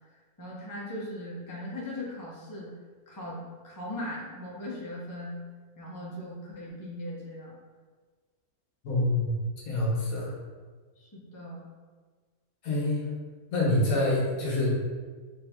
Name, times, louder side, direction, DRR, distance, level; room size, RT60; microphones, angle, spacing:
voice 1, 0.4-2.7 3.1-5.4 5.8-7.5 11.0-11.6, left 1 dB, 25° left, -5 dB, 0.4 m, -39 dB
voice 2, 8.8-10.3 12.6-13.1 13.5-14.8, left 1 dB, 65° left, -4 dB, 1.3 m, -26 dB
3.5 x 2.7 x 3.5 m, 1.5 s
omnidirectional pair, 1.6 m